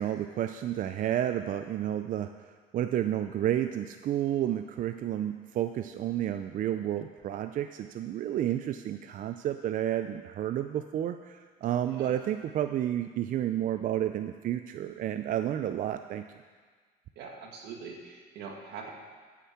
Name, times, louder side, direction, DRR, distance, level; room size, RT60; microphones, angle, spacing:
voice 1, 0.0-2.3 2.7-16.2, right 11 dB, 50° right, 8 dB, 0.4 m, -31 dB
voice 2, 17.2-18.9, right 5 dB, 85° right, 0 dB, 1.9 m, -43 dB
9.5 x 6.9 x 7.1 m, 1.5 s
cardioid pair, 110°, 17 cm